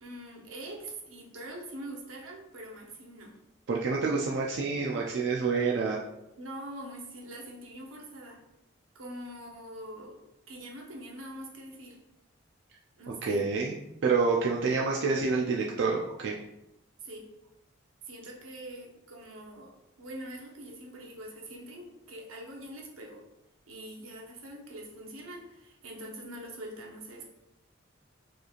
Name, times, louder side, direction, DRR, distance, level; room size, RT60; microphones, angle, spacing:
voice 1, 0.0-3.3 6.4-8.4 8.9-10.2 10.5-12.0 13.0-13.5 17.0-17.3 18.1-23.2 23.7-27.3, right 1 dB, 80° right, 0 dB, 0.8 m, -44 dB
voice 2, 3.7-6.0 13.2-13.8 14.0-16.3, right 4 dB, 55° right, -2 dB, 0.4 m, -27 dB
4.8 x 3.0 x 2.4 m, 0.90 s
head